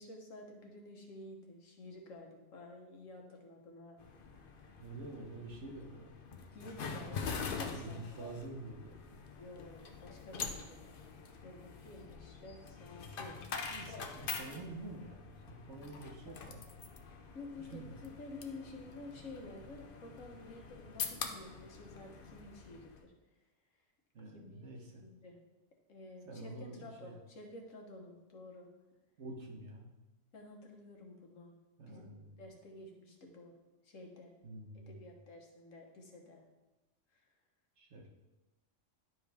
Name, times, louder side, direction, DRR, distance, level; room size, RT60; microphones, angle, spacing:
voice 1, 0.0-4.0 4.3-4.7 5.1-5.2 6.5-8.3 9.4-10.9 11.4-13.4 13.9-14.1 14.4-14.6 15.8-15.9 16.3-16.4 17.0-23.1 23.8-23.9 24.3-24.7 25.0-25.4 25.9-26.5 26.8-28.7 30.3-31.5 31.9-33.5 33.8-34.3 34.7-36.4 37.1-37.3, left 2 dB, 90° left, 1 dB, 1.6 m, -51 dB
sound 1, 4.0-23.0, left 5 dB, 50° left, 0.8 m, -45 dB
voice 2, 4.8-6.1 7.6-9.0 13.7-16.6 17.6-17.9 24.1-25.0 26.2-27.2 29.2-29.9 31.8-32.3 34.4-34.9 37.8-38.1, right 2 dB, 65° right, 1 dB, 1.4 m, -47 dB
11.0 x 4.8 x 3.4 m, 1.1 s
omnidirectional pair, 1.3 m